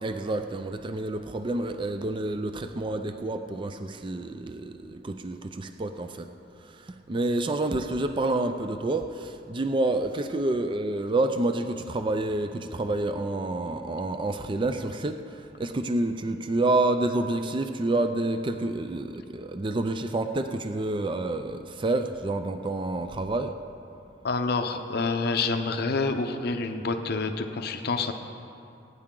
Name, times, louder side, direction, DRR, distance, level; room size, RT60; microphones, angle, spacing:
voice 1, 0.0-6.3 6.6-23.5, right 2 dB, 25° right, 8 dB, 0.4 m, -28 dB
voice 2, 24.2-28.1, left 3 dB, 60° left, 7 dB, 0.7 m, -27 dB
19.5 x 9.7 x 3.8 m, 2.6 s
head